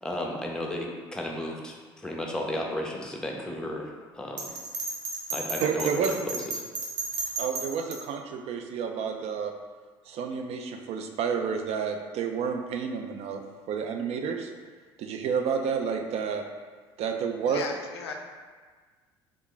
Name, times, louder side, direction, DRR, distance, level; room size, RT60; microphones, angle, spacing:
voice 1, 0.0-1.8 2.0-3.9 4.2-4.5 5.3-6.4, left 1 dB, 5° left, 0 dB, 0.6 m, -33 dB
Bell, 4.4-8.0, right 3 dB, 70° right, 0.8 m, -33 dB
voice 2, 5.6-6.2 7.4-9.5 10.1-13.4 13.7-14.5 15.0-16.4 17.0-17.6, right 6 dB, 50° right, 5 dB, 0.4 m, -30 dB
voice 3, 17.4-18.2, left 4 dB, 90° left, 3 dB, 0.4 m, -36 dB
2.9 x 2.4 x 3.8 m, 1.5 s
hypercardioid pair, 65°, 13 cm